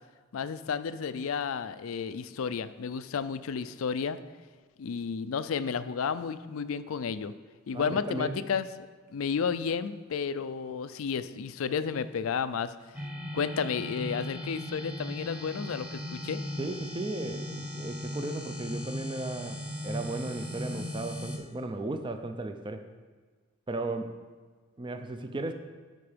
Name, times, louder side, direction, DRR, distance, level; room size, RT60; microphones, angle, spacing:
voice 1, 0.3-4.2 4.8-7.3 7.7-12.7 13.3-16.4, left 6 dB, 75° left, 13 dB, 0.4 m, -32 dB
voice 2, 7.7-8.4 16.6-22.8 23.7-24.1 24.8-25.5, right 2 dB, 20° right, 7 dB, 0.5 m, -35 dB
sound 1, 12.9-21.4, left 1 dB, 5° right, 0.9 m, -38 dB
12.5 x 4.5 x 5.1 m, 1.5 s
head